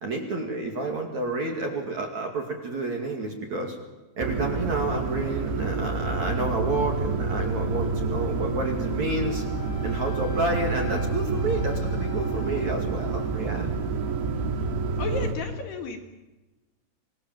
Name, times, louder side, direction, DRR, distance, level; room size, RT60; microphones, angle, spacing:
voice 1, 0.0-3.8 4.2-9.4 9.8-13.7, right 2 dB, 45° right, 1 dB, 3.0 m, -29 dB
sound 1, 4.2-15.3, right 3 dB, 60° right, 4.2 m, -28 dB
Wind instrument woodwind instrument, 9.2-13.5, left 9 dB, 80° left, 5.2 m, -44 dB
voice 2, 15.0-16.0, left 4 dB, 60° left, 3 dB, 3.5 m, -32 dB
26.0 x 20.5 x 7.5 m, 1.1 s
omnidirectional pair, 5.9 m